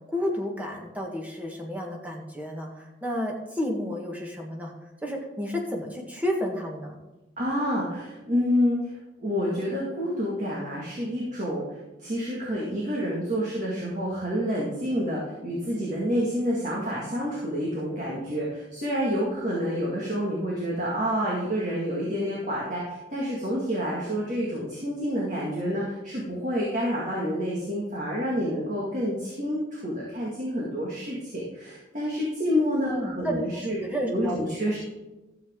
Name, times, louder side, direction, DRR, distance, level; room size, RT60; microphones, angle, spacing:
voice 1, 0.1-4.7 5.0-7.0 32.9-33.4 33.8-34.4, equal, 10° right, -1 dB, 1.5 m, -31 dB
voice 2, 7.4-33.8 34.1-34.8, equal, 40° right, -4 dB, 2.1 m, -28 dB
13.0 x 7.8 x 3.8 m, 1.1 s
head